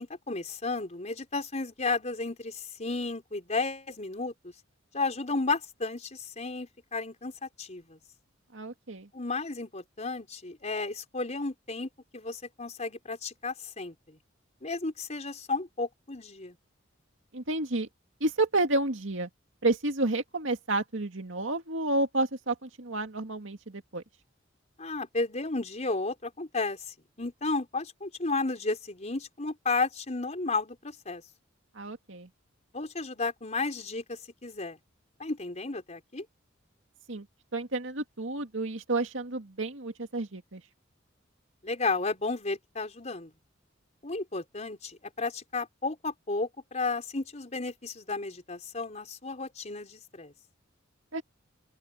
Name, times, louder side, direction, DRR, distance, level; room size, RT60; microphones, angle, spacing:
voice 1, 0.0-4.5 4.9-8.0 9.1-14.2 14.6-16.6 24.8-31.2 32.7-34.8 35.2-36.2 41.6-43.3 44.0-50.3, left 3 dB, 35° left, 4.4 m, -33 dB
voice 2, 8.5-9.1 17.3-17.9 18.2-19.3 19.6-24.0 31.8-32.3 37.1-37.3 37.5-40.6 51.1-51.2, right 2 dB, 75° right, 2.3 m, -30 dB
open air
head